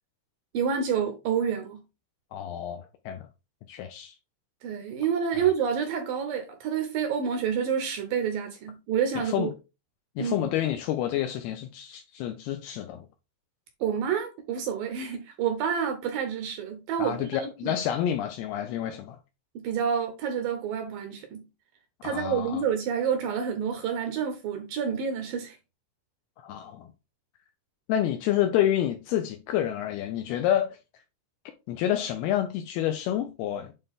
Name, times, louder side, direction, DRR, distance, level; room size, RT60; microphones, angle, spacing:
voice 1, 0.5-1.8 4.6-9.5 10.2-10.5 13.8-17.8 19.6-21.5 22.0-25.6, right 7 dB, 75° right, 2.2 m, -28 dB
voice 2, 2.3-3.3 3.7-4.1 9.3-9.5 10.2-13.1 17.0-19.2 22.0-22.6 26.4-26.9 27.9-30.8 31.7-33.7, left 11 dB, 80° left, 2.4 m, -28 dB
8.9 x 3.3 x 3.6 m
omnidirectional pair, 4.9 m